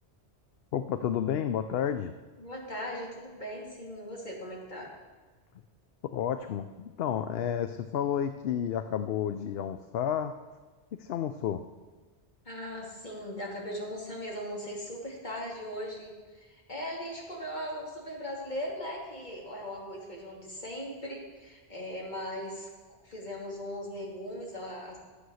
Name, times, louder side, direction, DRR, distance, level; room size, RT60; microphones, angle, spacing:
voice 1, 0.7-2.1 6.0-10.3 10.9-11.6, left 9 dB, 65° left, 9 dB, 0.8 m, -31 dB
voice 2, 2.4-4.9 12.4-22.7 23.0-25.0, equal, 40° left, -3 dB, 2.8 m, -39 dB
12.0 x 8.2 x 6.3 m, 1.3 s
omnidirectional pair, 1.2 m